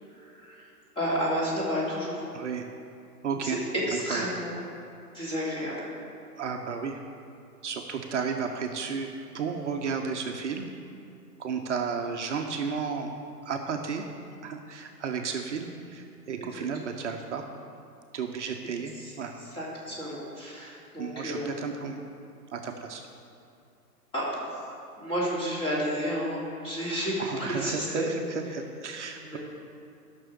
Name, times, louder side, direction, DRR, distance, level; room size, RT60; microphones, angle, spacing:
voice 1, 0.2-0.7 0.9-2.2 3.4-3.6 3.9-4.5 5.1-5.9 16.6-16.7 19.0-19.1 19.5-21.5 24.1-24.3 25.0-28.1 29.1-29.4, equal, 10° left, -7 dB, 3.0 m, -31 dB
voice 2, 2.3-2.7 3.2-3.6 4.1-4.3 6.4-7.0 7.6-9.1 9.3-10.7 11.4-14.0 14.4-17.4 18.1-19.4 21.0-22.0 22.5-23.0 27.2-29.4, right 5 dB, 45° right, 3 dB, 0.9 m, -33 dB
12.5 x 6.2 x 6.7 m, 2.6 s
figure-of-eight pair, 125°, 48 cm